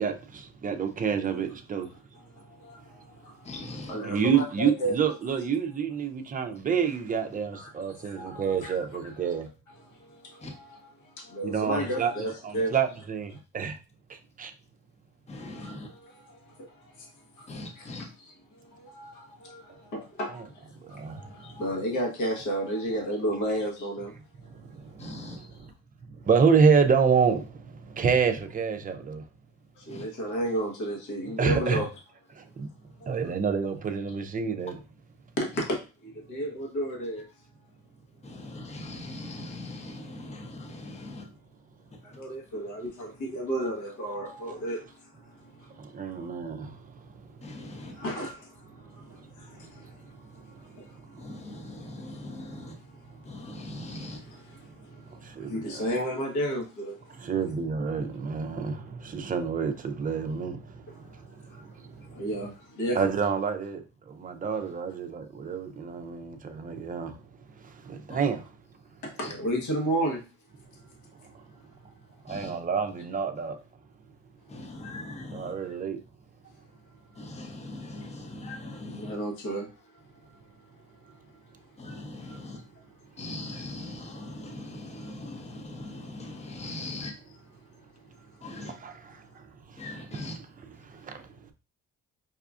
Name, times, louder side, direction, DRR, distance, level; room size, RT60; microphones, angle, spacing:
voice 1, 0.0-1.9 4.0-9.5 11.4-12.1 12.4-13.8 14.1-14.5 20.4-20.5 20.8-21.6 24.5-25.0 26.3-29.2 31.4-31.8 32.3-32.7 33.1-34.7 45.8-47.3 48.9-49.2 49.8-49.9 50.5-50.6 51.1-51.3 54.9-55.9 57.2-62.2 63.0-67.2 67.7-68.4 72.3-73.6 75.3-76.0 88.8-88.9 89.3-89.8 90.8-91.5, right 6 dB, 30° right, 0.5 m, -28 dB
voice 2, 2.1-3.5 3.9-4.9 7.5-8.9 9.2-9.4 9.9-10.5 11.0-12.8 15.4-15.7 16.0-17.5 17.8-17.9 18.5-24.1 29.8-31.9 35.4-35.7 36.1-37.3 42.0-46.3 48.0-51.3 53.2-53.3 54.6-57.3 60.9-61.2 61.5-63.2 69.0-70.2 78.8-80.0 81.0-81.1 82.3-82.4, right 1 dB, 75° left, 1.2 m, -33 dB
voice 3, 3.4-4.0 10.4-10.5 15.3-16.0 17.5-18.1 25.0-25.4 29.9-30.1 34.7-34.8 35.5-35.6 38.2-41.3 41.9-42.2 47.4-48.0 51.2-52.8 53.2-54.2 68.1-68.2 69.2-69.3 72.3-72.6 74.5-75.6 77.1-79.2 81.8-82.6 83.2-87.2 88.4-88.8 89.8-90.4 90.7-91.3, left 2 dB, 20° left, 0.7 m, -40 dB
4.8 x 2.4 x 2.4 m
cardioid pair, 90°, 30 cm